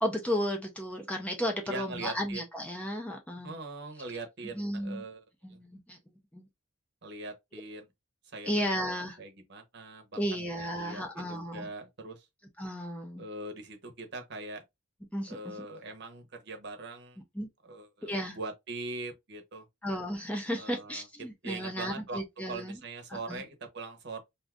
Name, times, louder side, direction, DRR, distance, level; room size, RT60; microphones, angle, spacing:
voice 1, 0.0-3.6 4.5-5.0 5.4-6.0 6.3-6.5 8.5-9.2 10.2-11.7 12.6-13.2 15.1-15.6 17.3-17.5 18.0-18.4 19.8-22.8 23.1-23.4, equal, 5° left, 0.5 m, -34 dB
voice 2, 1.7-2.4 3.4-5.6 7.0-7.9 8.2-10.2 10.6-12.3 13.2-14.6 15.3-17.2 17.6-19.7 20.6-22.2 22.5-24.2, right 3 dB, 50° right, 0.8 m, -42 dB
2.5 x 2.4 x 3.4 m
head